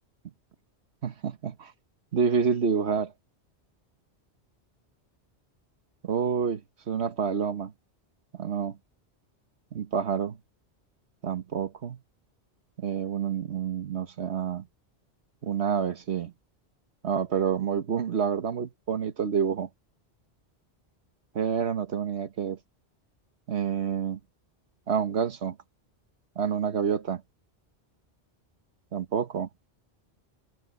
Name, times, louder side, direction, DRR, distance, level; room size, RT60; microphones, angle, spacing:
voice 1, 1.0-1.7 2.1-3.1 6.0-6.6 6.9-7.7 8.4-8.8 9.7-10.4 11.2-12.0 12.8-14.7 15.4-16.3 17.0-19.7 21.3-22.6 23.5-24.2 24.9-25.6 26.4-27.2 28.9-29.5, right 7 dB, 70° right, 1.4 m, -28 dB
omnidirectional pair, 1.2 m